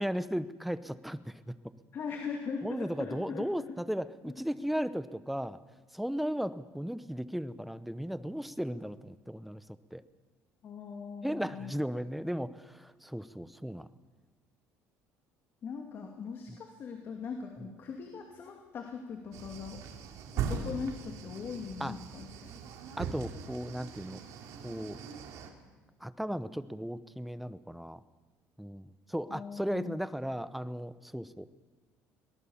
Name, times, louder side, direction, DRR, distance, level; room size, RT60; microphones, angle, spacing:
voice 1, 0.0-1.5 2.6-5.6 5.9-9.6 9.9-10.0 11.2-13.9 21.8-22.0 23.0-24.2 24.6-25.0 26.0-28.0 28.6-31.5, equal, ahead, 14 dB, 0.8 m, -36 dB
voice 2, 1.9-3.4 10.6-11.7 15.6-19.8 20.3-22.6 29.1-29.9, left 6 dB, 40° left, 3 dB, 2.6 m, -40 dB
sound 1, 19.3-25.5, right 6 dB, 70° right, 3.0 m, -40 dB
22.5 x 18.5 x 7.2 m, 1.3 s
cardioid pair, 135°, 6 cm